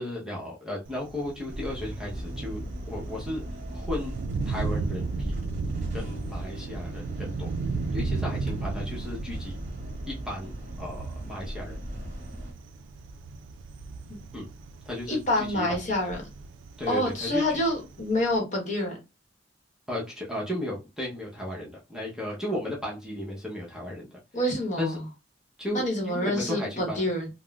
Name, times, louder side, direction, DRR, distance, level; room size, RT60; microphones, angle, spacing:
voice 1, 0.0-2.6 2.9-3.4 3.7-4.1 4.5-5.4 5.9-7.5 7.9-9.6 10.1-10.5 10.8-11.8 14.3-14.5 14.9-15.8 16.8-17.4 19.9-24.2 24.8-25.0 25.6-27.1, left 1 dB, 5° right, -4 dB, 0.7 m, -34 dB
Thunder, 0.8-18.4, right 4 dB, 85° right, 0.3 m, -36 dB
sound 1, 1.5-12.5, equal, 40° right, 0.9 m, -38 dB
voice 2, 15.1-16.2 16.9-19.0 24.3-25.0 25.7-27.3, left 1 dB, 40° left, 0 dB, 1.0 m, -27 dB
3.6 x 2.0 x 2.3 m, 0.25 s
head